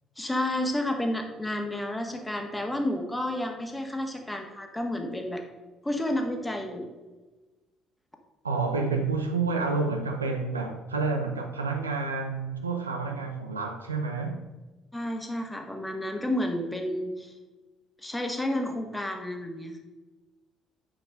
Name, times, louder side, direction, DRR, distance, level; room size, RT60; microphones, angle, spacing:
voice 1, 0.2-5.4 5.8-6.9 14.9-17.3 18.0-19.8, left 1 dB, 10° left, 1.6 m, -31 dB
voice 2, 8.4-14.5, right 4 dB, 90° right, 0.6 m, -29 dB
8.7 x 5.0 x 5.1 m
figure-of-eight pair, 50°, 0 cm